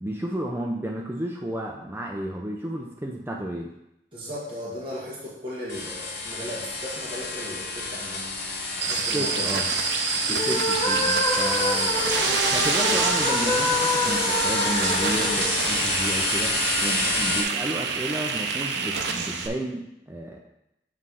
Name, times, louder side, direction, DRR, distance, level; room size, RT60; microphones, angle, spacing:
voice 1, 0.0-3.7 9.1-9.7 10.3-12.0 12.5-20.4, right 1 dB, 15° right, 0 dB, 0.5 m, -32 dB
voice 2, 4.1-8.3 8.8-9.6, left 1 dB, 30° right, -8 dB, 1.7 m, -36 dB
sound 1, 5.7-17.4, left 3 dB, 75° left, 2.2 m, -29 dB
sound 2, 8.8-19.5, right 5 dB, 70° right, 0.6 m, -27 dB
sound 3, 10.3-16.4, left 2 dB, 25° left, 0.8 m, -27 dB
7.4 x 3.2 x 5.5 m, 0.86 s
head